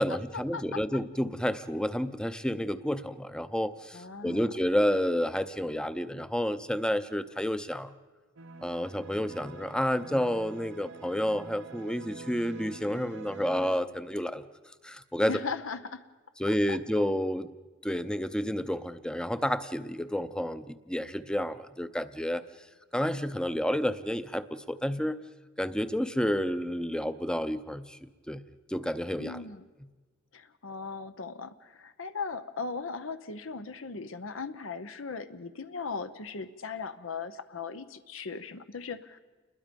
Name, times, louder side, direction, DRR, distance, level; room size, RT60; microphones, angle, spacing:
voice 1, 0.0-7.9 8.6-14.4 14.8-15.3 16.4-17.5 17.8-22.4 22.9-25.2 25.6-28.0 28.3-28.4 28.7-29.4, equal, 5° left, 13 dB, 0.6 m, -30 dB
voice 2, 3.9-4.5 15.3-16.0 16.5-16.8 29.2-29.7 30.3-39.2, left 4 dB, 85° left, 11 dB, 0.9 m, -38 dB
sound 1, 8.4-13.8, right 3 dB, 75° right, 1.2 m, -46 dB
29.0 x 21.5 x 5.3 m, 1.3 s
head